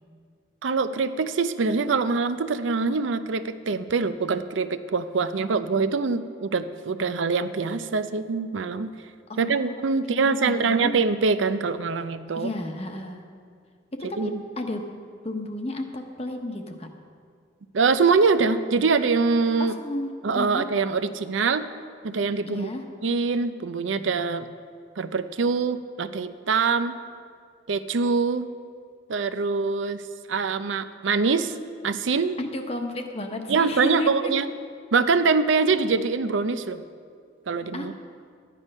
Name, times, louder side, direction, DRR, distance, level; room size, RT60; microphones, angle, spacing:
voice 1, 0.6-8.9 9.4-12.5 14.2-14.4 17.7-19.8 20.2-21.6 22.0-22.7 23.0-24.5 25.0-26.9 27.7-28.5 29.1-30.0 30.3-31.5 31.8-32.4 33.5-34.5 34.9-36.8 37.5-37.9, right 4 dB, 80° right, 11 dB, 0.5 m, -24 dB
voice 2, 9.3-10.9 12.4-13.2 13.9-14.3 14.6-14.8 15.2-16.9 19.6-20.6 22.5-22.8 32.4-34.3 37.7-37.9, left 1 dB, 30° left, 4 dB, 1.0 m, -32 dB
12.5 x 10.0 x 5.4 m, 2.1 s
head